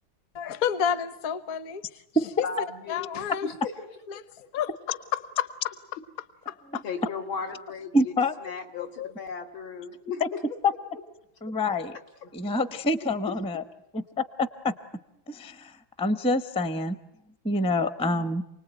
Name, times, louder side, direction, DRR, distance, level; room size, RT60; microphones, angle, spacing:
voice 1, 0.3-2.0 2.4-2.5 2.9-3.5 4.1-4.2 4.5-5.7 6.5-6.8 8.7-9.1, left 9 dB, 50° left, 15 dB, 1.4 m, -30 dB
voice 2, 2.4-3.1 3.4-3.7 6.8-8.1 8.4-10.4 12.2-12.3, left 5 dB, 85° left, 3 dB, 3.3 m, -35 dB
voice 3, 7.9-8.3 10.2-10.3 10.6-10.7 11.4-12.0 12.3-13.6 13.9-14.7 15.3-17.0 17.4-18.4, left 2 dB, 5° left, 12 dB, 0.5 m, -26 dB
29.0 x 20.0 x 9.2 m, 0.87 s
omnidirectional pair, 2.1 m